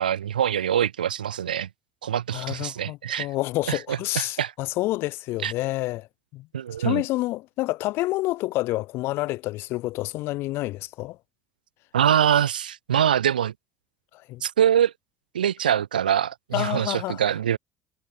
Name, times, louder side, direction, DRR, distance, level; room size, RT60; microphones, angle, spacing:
voice 1, 0.0-1.7 2.0-3.3 3.7-4.5 5.4-5.5 6.5-7.0 11.9-13.5 14.4-14.9 15.3-17.6, right 9 dB, 85° right, 0.3 m, -24 dB
voice 2, 2.3-6.1 6.3-6.5 6.8-11.2 14.1-14.4 16.5-17.2, left 18 dB, 60° left, 0.5 m, -28 dB
figure-of-eight pair, 55°, 5 cm